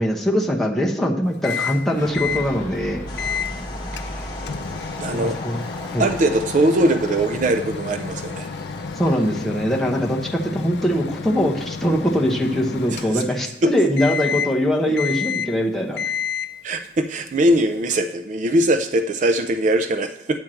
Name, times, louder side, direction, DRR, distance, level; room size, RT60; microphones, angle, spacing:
voice 1, 0.0-3.0 5.1-5.6 5.9-6.1 9.0-16.0, equal, ahead, -1 dB, 0.8 m, -22 dB
Microwave oven, 1.4-1.8 2.1-2.5 3.2-3.5 4.0-13.6 14.0-14.6 15.0-15.6 16.0-16.6, left 6 dB, 70° left, 0.5 m, -30 dB
Fire / Explosion, 1.4-7.3, equal, 45° left, 1.4 m, -37 dB
sound 1, 3.1-9.5, left 2 dB, 25° left, 1.5 m, -37 dB
voice 2, 3.9-4.3 5.0-5.4 6.0-8.5 12.9-13.2 13.6-13.7 14.8-15.0 16.6-20.4, right 1 dB, 45° right, 8 dB, 0.4 m, -21 dB
8.9 x 4.5 x 7.5 m, 0.85 s
head